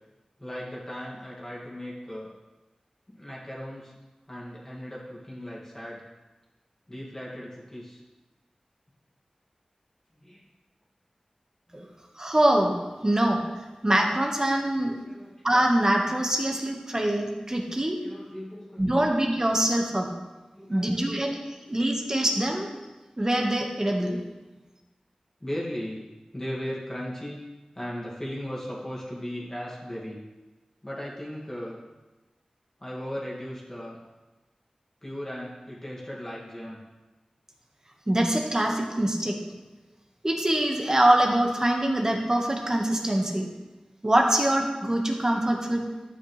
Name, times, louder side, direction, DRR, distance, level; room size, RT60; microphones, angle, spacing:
voice 1, 0.4-2.3 3.1-3.9 4.3-6.0 6.9-8.0 10.2-10.4 11.7-11.9 15.0-15.3 18.0-19.1 20.5-21.3 25.4-26.0 26.3-27.4 27.7-30.2 30.8-31.8 32.8-34.0 35.0-36.8, equal, 20° left, -6 dB, 2.3 m, -37 dB
voice 2, 12.2-12.8 13.0-13.4 13.8-15.0 15.4-18.0 18.8-20.1 20.7-21.4 21.7-22.7 23.2-24.2 38.1-39.4 40.2-43.5 44.0-45.9, right 1 dB, 30° right, 2 dB, 1.5 m, -24 dB
12.5 x 8.7 x 3.4 m, 1.2 s
wide cardioid pair, 60°, 2 cm